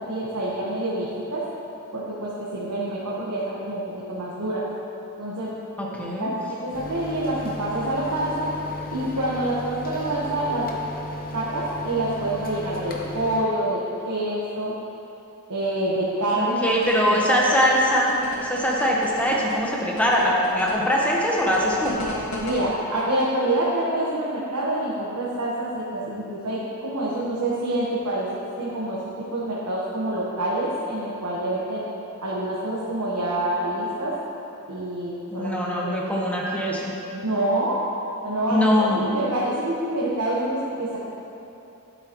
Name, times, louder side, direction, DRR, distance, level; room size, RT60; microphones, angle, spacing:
voice 1, 0.0-1.4 1.9-4.6 5.2-5.5 5.9-6.3 6.6-8.5 8.9-10.7 11.3-14.7 15.5-16.6 17.1-17.2 22.4-28.3 28.6-29.0 29.3-31.8 32.2-34.1 34.7-36.0 37.1-37.8 38.2-41.0, right 1 dB, 85° right, -7 dB, 1.3 m, -27 dB
voice 2, 5.8-6.3 16.3-22.0 35.3-36.9 38.5-39.0, equal, 5° left, -3 dB, 1.1 m, -22 dB
sound 1, 6.7-13.4, left 1 dB, 40° left, 0.8 m, -35 dB
sound 2, 16.7-22.6, left 1 dB, 65° left, 1.5 m, -36 dB
10.5 x 7.7 x 3.0 m, 2.9 s
head